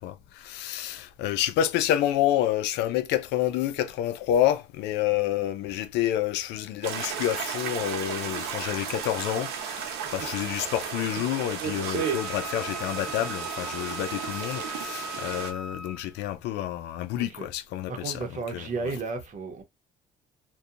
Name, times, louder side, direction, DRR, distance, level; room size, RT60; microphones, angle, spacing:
voice 1, 0.0-18.9, left 12 dB, 85° left, 0.4 m, -28 dB
sound 1, 6.8-15.5, right 7 dB, 90° right, 0.8 m, -33 dB
Wind instrument woodwind instrument, 12.0-16.2, left 1 dB, ahead, 0.5 m, -39 dB
voice 2, 17.1-17.5 17.9-19.6, right 4 dB, 45° right, 0.8 m, -34 dB
2.7 x 2.2 x 2.4 m
cardioid pair, 110°, 17 cm